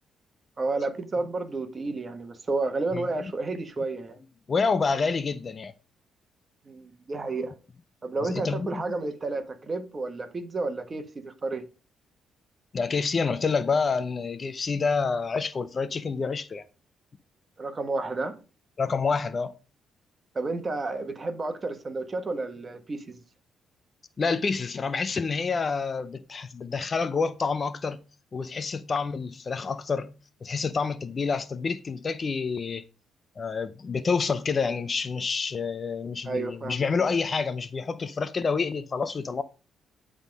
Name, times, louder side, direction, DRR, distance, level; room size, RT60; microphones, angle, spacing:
voice 1, 0.6-4.2 6.7-7.5 8.0-11.6 17.6-18.4 20.3-23.1 36.2-36.7, right 3 dB, 30° right, 1.3 m, -31 dB
voice 2, 2.9-3.3 4.5-5.7 8.2-8.8 12.7-16.6 18.8-19.5 24.2-28.0 28.3-30.1 30.4-32.8 33.4-39.4, left 5 dB, 35° left, 0.5 m, -28 dB
10.0 x 3.7 x 5.2 m
cardioid pair, 90°, 0 cm